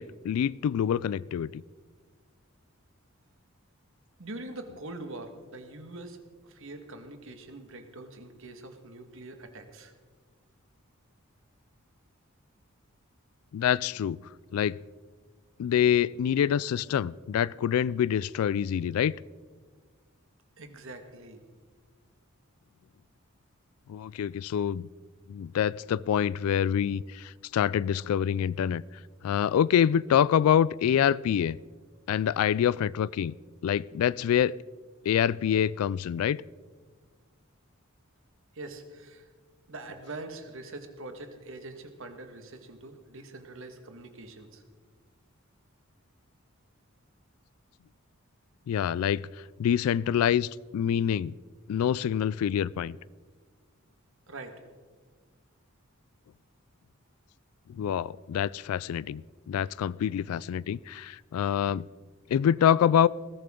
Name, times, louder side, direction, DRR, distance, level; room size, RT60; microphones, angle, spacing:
voice 1, 0.0-1.6 13.5-14.2 14.5-14.8 15.6-19.1 23.9-24.9 25.3-28.8 29.2-31.6 32.1-33.3 33.6-34.5 35.1-36.4 48.7-49.2 49.6-51.3 51.7-53.0 57.8-61.9 62.3-63.1, left 9 dB, 80° left, 18 dB, 0.3 m, -26 dB
voice 2, 4.2-6.2 6.4-9.9 20.6-21.4 38.5-39.3 39.7-44.6 54.3-54.6, right 2 dB, 65° right, 6 dB, 1.7 m, -43 dB
20.5 x 14.0 x 3.8 m, 1.5 s
head